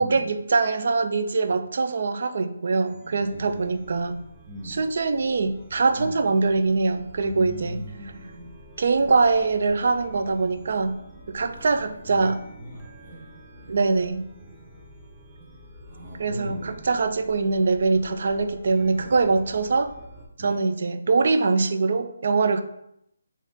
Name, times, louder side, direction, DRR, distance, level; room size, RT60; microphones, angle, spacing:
voice 1, 0.0-4.2 4.7-7.8 8.8-11.0 11.3-12.4 13.7-14.3 16.2-19.9 20.4-22.6, right 4 dB, 55° right, 8 dB, 0.4 m, -23 dB
Chime, 2.8-20.3, equal, 5° right, 0.6 m, -48 dB
voice 2, 3.2-3.6 4.5-4.8 6.0-6.2 7.2-8.5 9.0-9.1 11.5-13.8 14.4-14.8 15.9-16.9 18.8-19.5 20.4-20.6, equal, 35° right, -10 dB, 1.2 m, -40 dB
3.9 x 2.5 x 3.5 m, 0.77 s
hypercardioid pair, 160°, 0 cm